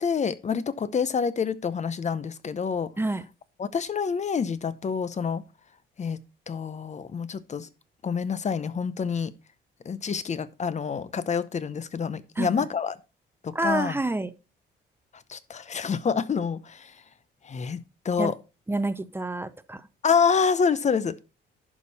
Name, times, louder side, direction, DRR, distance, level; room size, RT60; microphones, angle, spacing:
voice 1, 0.0-2.9 3.6-5.4 6.0-6.2 6.5-7.7 8.0-9.3 9.8-12.9 13.4-13.9 15.3-16.9 17.4-18.3 20.0-21.2, left 6 dB, 35° left, 0.7 m, -27 dB
voice 2, 13.5-14.3 18.2-18.3 18.7-19.8, right 2 dB, 10° right, 0.7 m, -28 dB
11.0 x 5.4 x 4.1 m
cardioid pair, 90°, 20 cm